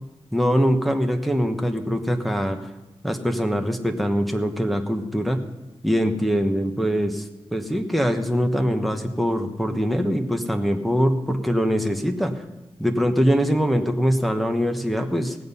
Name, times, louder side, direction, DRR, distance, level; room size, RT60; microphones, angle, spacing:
voice 1, 0.3-2.6 3.0-5.4 5.8-7.2 7.5-12.3 12.8-15.4, equal, ahead, 4 dB, 1.2 m, -23 dB
18.0 x 7.8 x 5.5 m, 1.0 s
wide cardioid pair, 100°, 11 cm